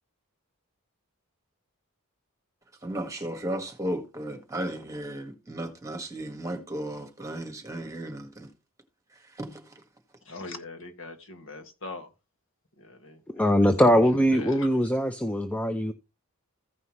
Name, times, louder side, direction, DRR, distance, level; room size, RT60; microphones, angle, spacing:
voice 1, 2.8-8.5 9.3-9.8, right 1 dB, 15° right, 1.7 m, -35 dB
voice 2, 10.2-12.1 12.8-14.0 14.3-14.7, left 2 dB, 60° left, 1.8 m, -42 dB
voice 3, 13.3-15.9, equal, 5° left, 0.6 m, -22 dB
15.0 x 5.5 x 3.1 m
head